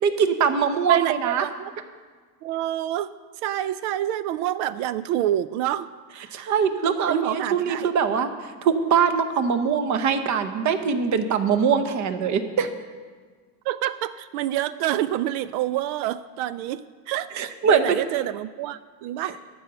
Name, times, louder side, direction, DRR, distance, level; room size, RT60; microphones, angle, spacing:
voice 1, 0.0-1.4 6.3-8.3 8.6-12.7 17.4-18.0 19.2-19.3, right 6 dB, 40° right, 9 dB, 0.9 m, -22 dB
voice 2, 0.9-1.7 2.4-3.1 3.4-5.9 6.1-6.5 7.1-7.9 13.7-19.4, right 12 dB, 75° right, 15 dB, 0.5 m, -27 dB
11.5 x 5.6 x 8.8 m, 1.5 s
cardioid pair, 135°, 43 cm